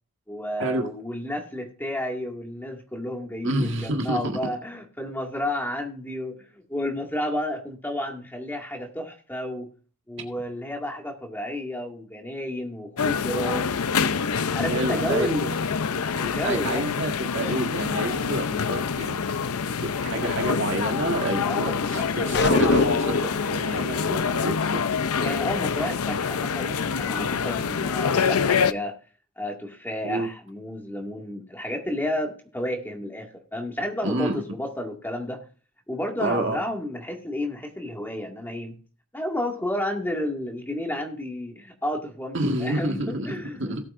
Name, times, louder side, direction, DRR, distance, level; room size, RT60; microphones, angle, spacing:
voice 1, 0.3-9.7 10.1-13.7 14.5-15.5 16.2-16.9 21.5-22.7 25.2-29.0 29.4-35.4 35.9-38.8 39.1-43.9, left 1 dB, 10° left, 2 dB, 2.1 m, -31 dB
voice 2, 3.4-4.4 14.6-15.3 16.4-24.8 30.0-30.3 34.0-34.4 36.2-36.6 42.3-43.9, right 1 dB, 55° right, 3 dB, 1.8 m, -29 dB
sound 1, 13.0-28.7, left 6 dB, 85° left, 0.6 m, -26 dB
sound 2, 22.3-23.4, left 3 dB, 50° left, 0.7 m, -22 dB
18.0 x 8.3 x 2.6 m, 0.39 s
head